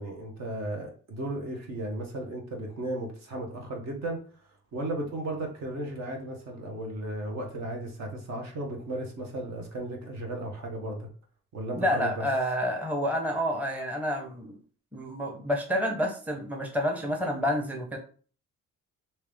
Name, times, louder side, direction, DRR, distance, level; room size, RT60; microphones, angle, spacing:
voice 1, 0.0-4.2 4.7-11.1 11.5-12.2, right 1 dB, 60° right, 1 dB, 1.3 m, -35 dB
voice 2, 11.7-14.6 14.9-18.0, equal, 5° right, 1 dB, 0.8 m, -29 dB
3.4 x 2.9 x 3.4 m, 0.42 s
cardioid pair, 90°, 30 cm